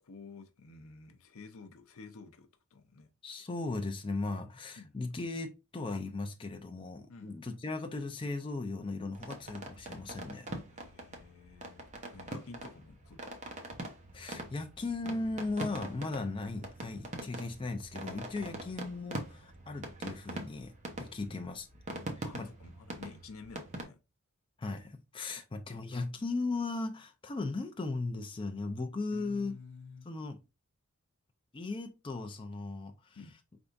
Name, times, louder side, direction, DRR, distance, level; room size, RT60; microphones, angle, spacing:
voice 1, 0.0-3.1 4.8-4.9 7.1-7.4 10.7-13.2 18.3-18.8 21.2-21.4 22.2-24.0 25.7-25.8 29.1-30.1 33.2-33.3, left 4 dB, 70° left, 0.6 m, -51 dB
voice 2, 3.2-10.5 14.1-20.7 21.0-21.7 22.1-22.5 24.6-29.6 30.0-30.4 31.5-33.2, left 3 dB, 25° left, 0.4 m, -37 dB
sound 1, 9.1-23.8, right 1 dB, 35° right, 0.8 m, -43 dB
4.7 x 3.4 x 2.5 m
head